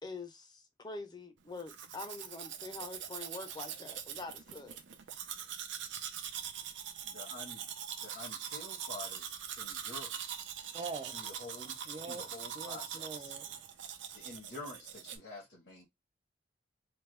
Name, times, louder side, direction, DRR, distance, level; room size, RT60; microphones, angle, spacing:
voice 1, 0.0-4.8 5.1-5.2, left 3 dB, 25° left, 0.6 m, -45 dB
Domestic sounds home sounds, 1.6-15.2, right 8 dB, 90° right, 0.6 m, -43 dB
voice 2, 7.0-7.7 8.0-10.2 11.1-11.8 12.1-13.4 14.1-15.9, left 2 dB, 65° left, 1.3 m, -48 dB
voice 3, 10.7-11.3 11.9-13.7, right 4 dB, 25° right, 0.3 m, -44 dB
3.3 x 2.2 x 3.2 m
head